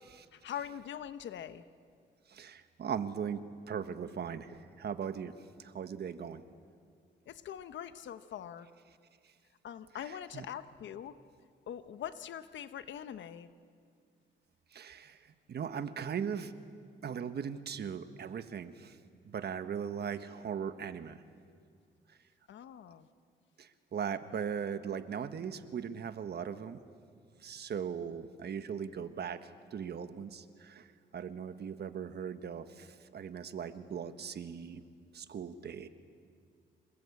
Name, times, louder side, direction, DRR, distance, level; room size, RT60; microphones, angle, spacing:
voice 1, 0.3-1.6 7.3-8.7 9.6-11.2 11.7-13.5 22.5-23.1, left 9 dB, 80° left, 12 dB, 1.1 m, -43 dB
voice 2, 2.3-5.3 5.6-6.4 10.0-10.4 14.7-16.5 17.0-19.0 19.2-21.2 23.6-26.8 27.4-30.9 31.1-34.8 35.1-35.9, right 7 dB, 60° right, 10 dB, 1.4 m, -39 dB
28.0 x 20.0 x 8.3 m, 2.1 s
cardioid pair, 90°, 19 cm